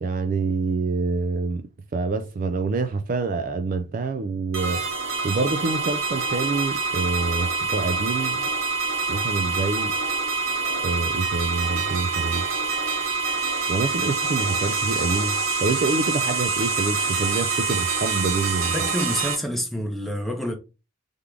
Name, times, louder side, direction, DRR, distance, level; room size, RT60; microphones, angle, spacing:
voice 1, 0.0-4.8 5.2-8.4 9.1-9.9 10.8-12.5 13.7-18.7, right 3 dB, 40° right, 0.3 m, -26 dB
sound 1, 4.5-19.3, right 4 dB, 80° right, 1.3 m, -26 dB
voice 2, 18.7-20.6, equal, ahead, 0.8 m, -27 dB
3.6 x 3.5 x 3.2 m
head